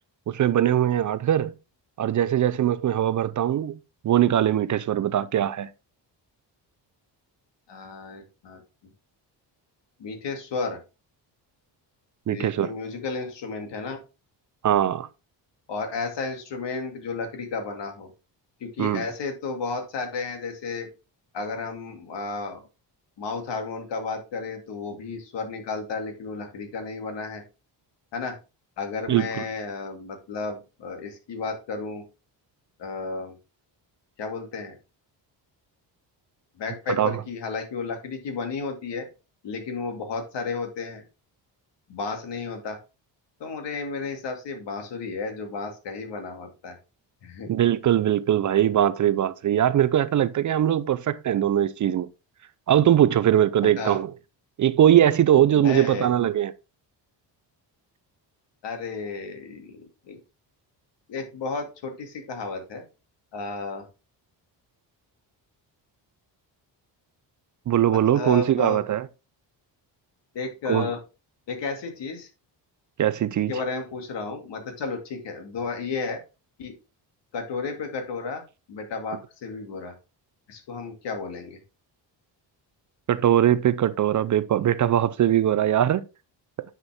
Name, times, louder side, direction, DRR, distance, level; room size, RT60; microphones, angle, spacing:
voice 1, 0.3-1.5 2.0-3.8 4.0-5.7 12.3-12.7 14.6-15.1 18.8-19.0 29.1-29.3 36.9-37.2 47.5-52.1 52.7-54.1 54.6-56.5 67.7-69.1 70.7-70.9 73.0-73.5 83.1-86.0, right 11 dB, 45° right, 0.4 m, -21 dB
voice 2, 7.7-8.6 10.0-10.8 12.3-14.0 15.7-18.1 18.6-20.9 21.3-22.6 23.2-27.4 28.1-28.4 28.8-32.0 32.8-33.4 34.2-34.8 36.6-39.1 39.4-41.0 41.9-42.8 43.4-46.8 47.2-47.5 53.8-54.0 55.4-56.1 58.6-60.2 61.1-62.8 63.3-63.9 67.9-68.8 70.3-71.0 71.5-72.3 73.5-76.2 76.6-76.7 77.3-78.4 78.7-79.9 80.5-81.6, left 4 dB, 70° left, 2.4 m, -33 dB
9.8 x 5.9 x 3.5 m
cardioid pair, 150°, 44 cm